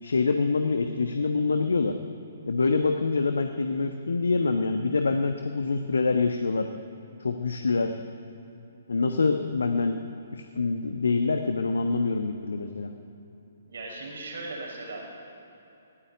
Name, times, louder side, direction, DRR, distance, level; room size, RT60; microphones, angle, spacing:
voice 1, 0.0-1.9 2.5-6.7 7.2-8.0 8.9-10.0 10.3-12.9, left 4 dB, 65° left, 6 dB, 1.2 m, -25 dB
voice 2, 13.7-15.1, right 2 dB, 60° right, 0 dB, 6.9 m, -38 dB
19.0 x 17.0 x 9.2 m, 2.9 s
figure-of-eight pair, 130°, 0 cm